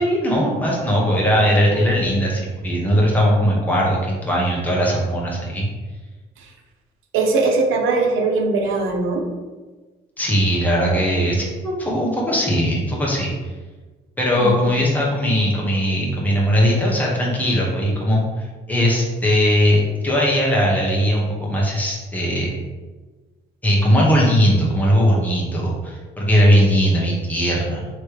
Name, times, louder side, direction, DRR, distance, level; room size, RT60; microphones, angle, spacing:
voice 1, 0.0-5.7 10.2-13.3 14.2-22.5 23.6-27.9, equal, 10° left, -4 dB, 1.1 m, -19 dB
voice 2, 7.1-9.2 14.4-14.6, right 3 dB, 90° right, 2 dB, 0.8 m, -20 dB
3.3 x 3.2 x 4.6 m, 1.3 s
cardioid pair, 90°, 20 cm